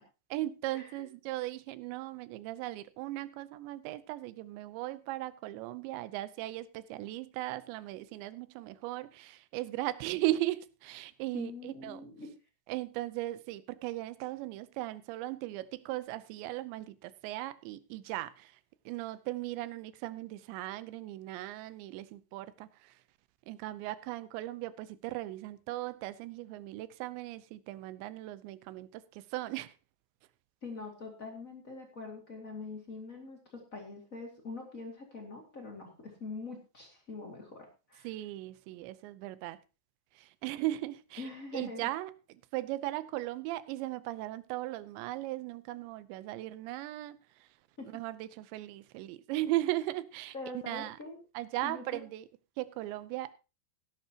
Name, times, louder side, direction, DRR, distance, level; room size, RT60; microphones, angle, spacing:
voice 1, 0.3-12.1 12.7-18.6 18.9-23.0 23.5-29.7 38.0-39.6 40.2-42.1 42.5-47.5 47.8-50.3 50.7-51.0 51.3-52.3 52.6-53.3, right 16 dB, 80° right, 2.9 m, -37 dB
voice 2, 11.3-12.3 30.6-38.1 41.2-41.9 47.8-48.0 50.3-51.2 51.6-52.0, left 3 dB, 40° left, 1.2 m, -44 dB
16.5 x 11.5 x 2.9 m
omnidirectional pair, 5.3 m